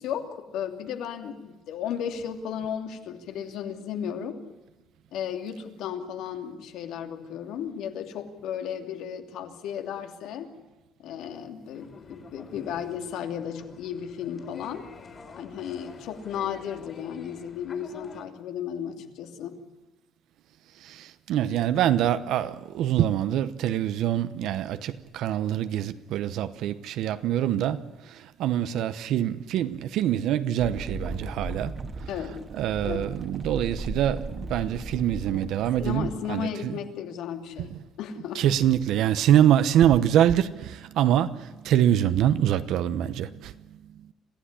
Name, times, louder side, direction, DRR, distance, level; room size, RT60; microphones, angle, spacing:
voice 1, 0.0-4.4 5.1-10.5 11.0-14.9 15.4-19.6 32.1-32.4 32.8-33.0 35.8-38.5, left 8 dB, 70° left, 2.7 m, -34 dB
sound 1, 11.7-18.2, left 4 dB, 30° left, 3.5 m, -47 dB
voice 2, 21.3-27.8 28.4-31.7 32.5-36.8 38.3-41.3 41.6-43.3, right 11 dB, 65° right, 1.0 m, -24 dB
sound 2, 30.6-36.1, right 2 dB, 25° right, 1.8 m, -36 dB
27.0 x 15.5 x 10.0 m
cardioid pair, 175°, 0 cm